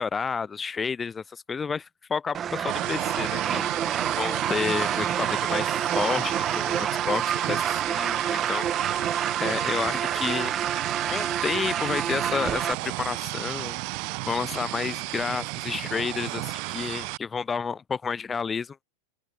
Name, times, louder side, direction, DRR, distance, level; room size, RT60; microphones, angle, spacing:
voice 1, 0.0-3.7 4.1-8.7 9.4-10.5 11.1-13.8 14.3-18.8, left 5 dB, 15° left, 0.5 m, -30 dB
sound 1, 2.3-12.7, right 9 dB, 25° right, 1.3 m, -28 dB
sound 2, 2.7-17.2, right 39 dB, 45° right, 0.9 m, -33 dB
open air
figure-of-eight pair, 90°, 0 cm